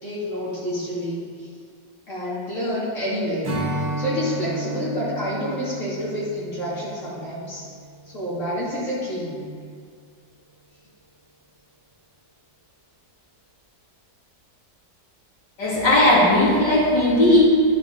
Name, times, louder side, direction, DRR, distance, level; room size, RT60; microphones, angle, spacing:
voice 1, 0.0-1.3 2.1-7.7 8.1-9.4, equal, 45° left, -9 dB, 3.1 m, -28 dB
Strum, 3.4-8.9, right 1 dB, 75° right, 2.6 m, -33 dB
voice 2, 15.6-17.4, left 1 dB, 70° left, -8 dB, 3.2 m, -17 dB
10.5 x 7.3 x 4.0 m, 2.1 s
omnidirectional pair, 1.9 m